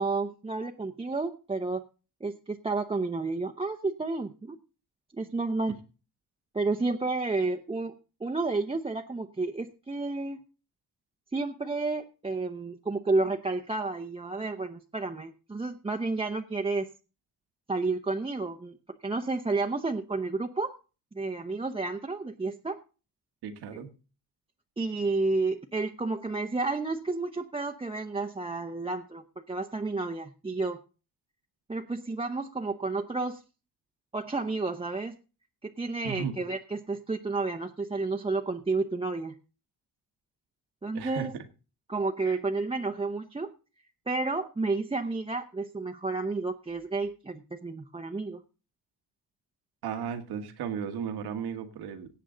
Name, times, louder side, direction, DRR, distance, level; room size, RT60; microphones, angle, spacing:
voice 1, 0.0-1.8 2.2-4.6 5.1-5.7 6.5-7.9 8.2-10.4 11.3-16.9 17.7-18.8 19.0-20.8 21.1-22.8 24.8-30.8 31.7-33.4 34.1-35.1 35.6-39.4 40.8-41.3 41.9-43.5 44.1-48.4, right 3 dB, 15° right, 3 dB, 0.8 m, -31 dB
voice 2, 23.4-23.9 36.0-36.4 40.9-41.4 42.3-42.4 49.8-52.1, right 7 dB, 80° right, 7 dB, 1.7 m, -35 dB
18.0 x 7.5 x 3.9 m, 0.34 s
cardioid pair, 85°, 38 cm